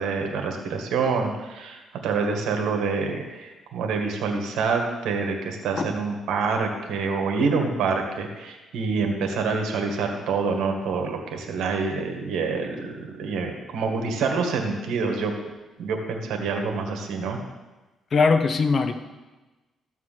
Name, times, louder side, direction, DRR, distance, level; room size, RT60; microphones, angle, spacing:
voice 1, 0.0-15.3 15.8-17.4, right 4 dB, 80° right, 3 dB, 1.8 m, -26 dB
voice 2, 18.1-18.9, left 4 dB, 45° left, 8 dB, 1.0 m, -20 dB
14.0 x 4.8 x 7.5 m, 1.2 s
cardioid pair, 90°, 0 cm